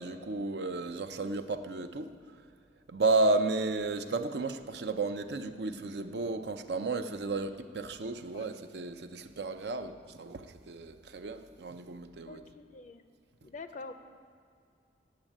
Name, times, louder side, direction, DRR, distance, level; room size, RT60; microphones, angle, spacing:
voice 1, 0.0-2.1 2.9-12.4, right 3 dB, 65° right, 9 dB, 0.6 m, -33 dB
voice 2, 12.3-13.1 13.4-13.9, left 3 dB, 45° left, 8 dB, 0.4 m, -45 dB
8.6 x 7.2 x 8.8 m, 2.2 s
head